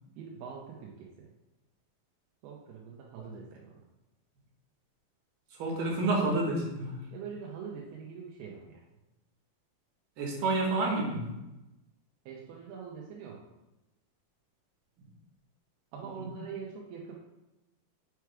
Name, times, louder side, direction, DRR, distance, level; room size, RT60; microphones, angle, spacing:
voice 1, 0.2-1.3 2.4-3.8 7.1-8.8 12.3-13.4 15.9-17.1, right 6 dB, 90° right, -2 dB, 2.8 m, -43 dB
voice 2, 5.6-7.0 10.2-11.3 16.0-16.3, right 2 dB, 65° right, -1 dB, 2.7 m, -29 dB
5.8 x 4.8 x 4.7 m, 0.98 s
omnidirectional pair, 4.4 m